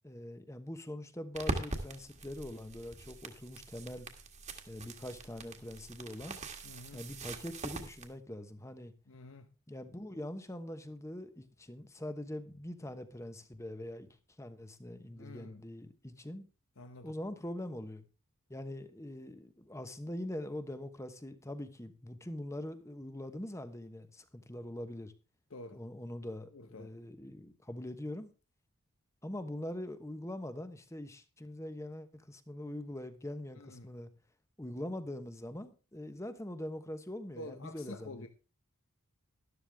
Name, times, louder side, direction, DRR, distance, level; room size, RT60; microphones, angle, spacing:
voice 1, 0.0-4.1 4.7-6.4 6.9-8.9 9.7-14.1 14.4-16.5 17.0-18.0 18.5-25.1 25.7-28.3 29.2-34.1 34.6-38.3, left 1 dB, 15° left, 1.1 m, -43 dB
sound 1, 1.3-8.1, right 2 dB, 30° right, 1.7 m, -42 dB
voice 2, 6.6-7.1 9.1-9.5 15.2-15.6 16.8-17.1 25.5-25.8 26.5-26.9 33.5-33.9 37.4-38.3, left 2 dB, 60° left, 1.0 m, -48 dB
13.0 x 12.0 x 3.5 m
head